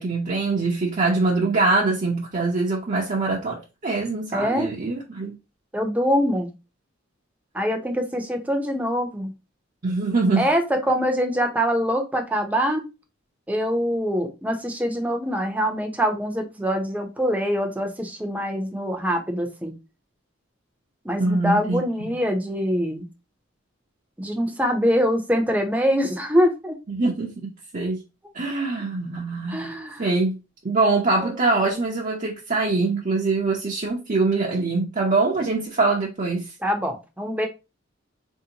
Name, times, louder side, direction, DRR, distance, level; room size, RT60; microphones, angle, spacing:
voice 1, 0.0-5.3 9.8-10.5 21.2-22.2 26.9-28.0 28.3-29.7 30.0-30.4 30.6-36.5, right 3 dB, 45° right, 0.7 m, -23 dB
voice 2, 4.3-4.7 5.7-6.5 7.5-9.3 10.4-12.8 13.5-19.7 21.0-23.0 24.2-26.8 29.5-30.0 36.6-37.5, equal, 10° right, 0.7 m, -24 dB
4.2 x 2.7 x 2.8 m
head